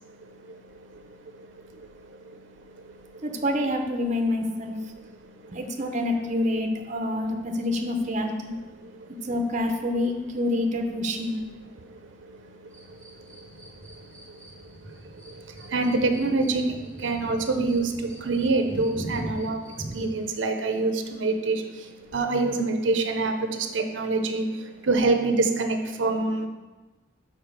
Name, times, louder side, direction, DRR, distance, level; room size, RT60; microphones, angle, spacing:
voice 1, 0.2-3.3 5.2-5.6 8.8-9.3 11.8-26.5, right 3 dB, 85° right, 5 dB, 0.7 m, -28 dB
voice 2, 3.2-4.7 5.5-8.6 9.2-11.4, left 1 dB, 40° right, 4 dB, 0.6 m, -27 dB
sound 1, 12.7-20.2, right 1 dB, 10° left, 1.9 m, -41 dB
5.1 x 4.6 x 6.0 m, 1.2 s
head